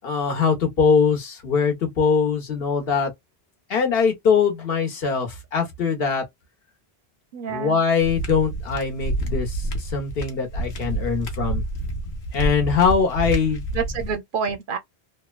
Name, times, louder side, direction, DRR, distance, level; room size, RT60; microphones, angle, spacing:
voice 1, 0.0-3.1 3.7-6.2 7.5-11.6 12.3-13.7, left 6 dB, 65° left, 1.1 m, -22 dB
voice 2, 7.3-7.8 13.7-14.8, right 6 dB, 60° right, 0.7 m, -28 dB
sound 1, 8.0-14.2, right 1 dB, 85° left, 1.1 m, -28 dB
3.1 x 2.1 x 2.2 m
omnidirectional pair, 1.1 m